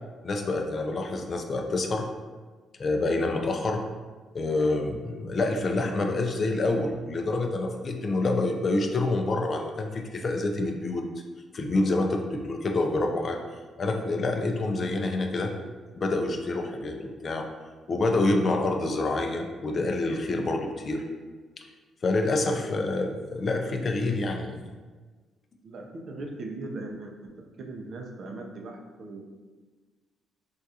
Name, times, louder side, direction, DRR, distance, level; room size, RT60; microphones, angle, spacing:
voice 1, 0.2-2.1 2.8-3.8 4.3-11.0 11.5-13.4 13.8-15.5 16.0-17.5 17.9-21.0 22.0-24.7, left 2 dB, 45° left, 3 dB, 0.3 m, -27 dB
voice 2, 25.6-27.1 27.6-29.2, right 2 dB, 55° right, 1 dB, 0.5 m, -38 dB
3.5 x 2.3 x 2.7 m, 1.4 s
cardioid pair, 90°, 0 cm